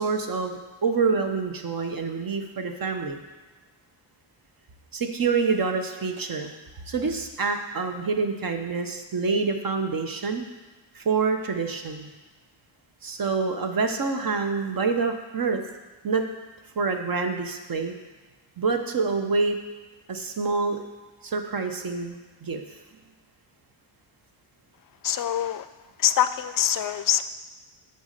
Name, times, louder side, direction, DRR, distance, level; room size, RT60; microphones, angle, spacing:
voice 1, 0.0-3.2 4.9-6.5 6.9-10.4 10.9-12.1 13.0-15.6 16.0-16.3 16.8-17.9 18.6-19.6 20.1-20.8 21.2-22.6, right 4 dB, 45° right, 5 dB, 0.9 m, -26 dB
voice 2, 25.0-25.7 26.0-27.3, left 10 dB, 45° left, 13 dB, 0.5 m, -24 dB
7.0 x 4.2 x 6.5 m, 1.3 s
cardioid pair, 80°, 49 cm